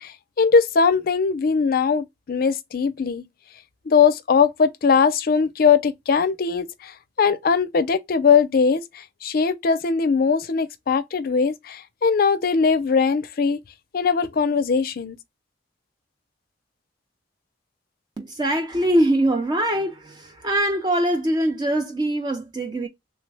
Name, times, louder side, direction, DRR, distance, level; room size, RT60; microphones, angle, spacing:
voice 1, 0.0-3.2 3.9-13.6 13.9-15.2, left 5 dB, 55° left, 0.4 m, -20 dB
voice 2, 18.2-22.9, right 1 dB, 25° right, 0.4 m, -23 dB
3.3 x 2.1 x 3.2 m
head